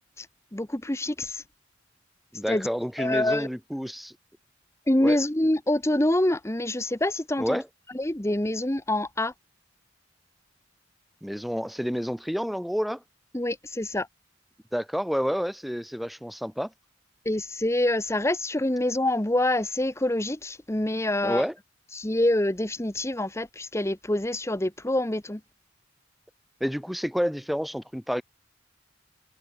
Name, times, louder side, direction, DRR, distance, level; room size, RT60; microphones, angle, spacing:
voice 1, 0.5-1.4 2.5-2.7 3.0-3.5 4.9-7.6 7.9-9.3 13.3-14.1 17.2-21.4 21.9-25.4, left 1 dB, 15° left, 1.2 m, -26 dB
voice 2, 2.3-4.1 5.0-5.2 7.4-7.6 11.2-13.0 14.7-16.7 21.2-21.5 26.6-28.2, equal, ahead, 0.8 m, -29 dB
head